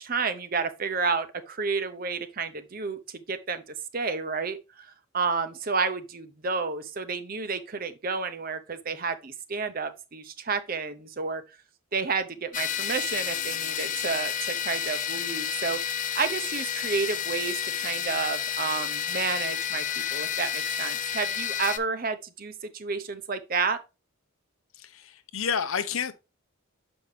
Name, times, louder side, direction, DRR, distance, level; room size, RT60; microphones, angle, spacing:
voice 1, 0.0-3.6 3.9-11.6 11.9-19.8 20.1-23.8, right 4 dB, 40° right, 0.7 m, -31 dB
sound 1, 12.5-21.8, left 9 dB, 35° left, 0.5 m, -30 dB
voice 2, 24.7-26.1, left 6 dB, 75° left, 0.7 m, -30 dB
6.9 x 5.3 x 3.2 m
head